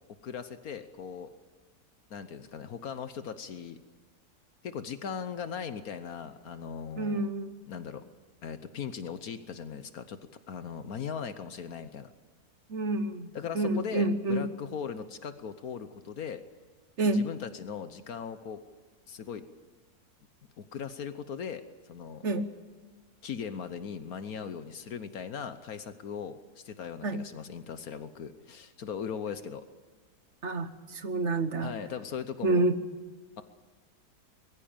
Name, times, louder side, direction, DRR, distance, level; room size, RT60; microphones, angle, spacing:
voice 1, 0.2-1.3 2.1-3.8 4.6-7.3 7.7-8.0 8.4-12.1 13.3-16.4 17.1-18.6 19.1-19.5 20.6-21.6 21.9-22.3 23.2-29.6 31.6-32.6, left 7 dB, 65° left, 11 dB, 1.4 m, -39 dB
voice 2, 7.0-7.5 12.7-13.3 13.5-14.5 17.0-17.2 22.2-22.4 27.0-27.2 30.4-30.7 31.0-31.7 32.4-32.7, right 2 dB, 50° right, 10 dB, 1.4 m, -28 dB
22.0 x 15.0 x 8.9 m, 1.4 s
omnidirectional pair, 1.7 m